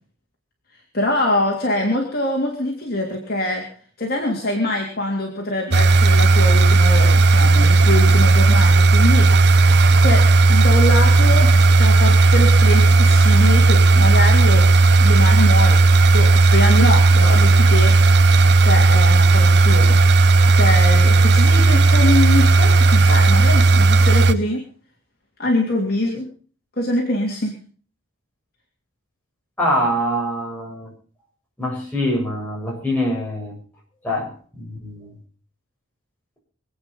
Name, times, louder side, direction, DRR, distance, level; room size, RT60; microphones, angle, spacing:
voice 1, 0.9-3.7 4.0-9.6 10.0-14.7 15.0-17.9 18.6-20.0 20.5-24.6 25.4-26.3 26.8-27.5, left 1 dB, 50° left, -1 dB, 3.1 m, -24 dB
sound 1, 5.7-24.3, right 3 dB, 55° right, 0.7 m, -13 dB
voice 2, 29.6-30.9 31.6-33.5 34.0-35.1, equal, 10° left, -3 dB, 7.1 m, -24 dB
25.0 x 9.0 x 5.6 m, 0.42 s
head